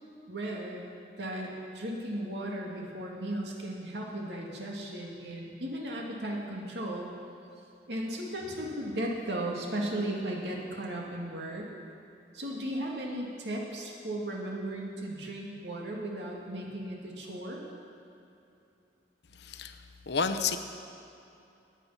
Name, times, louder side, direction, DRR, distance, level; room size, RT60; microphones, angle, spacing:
voice 1, 0.3-0.8 1.2-7.1 7.9-11.7 12.3-17.6, right 1 dB, 75° right, -2 dB, 2.5 m, -36 dB
voice 2, 19.4-20.6, left 5 dB, 70° left, 9 dB, 0.8 m, -31 dB
20.5 x 8.6 x 5.9 m, 2.7 s
head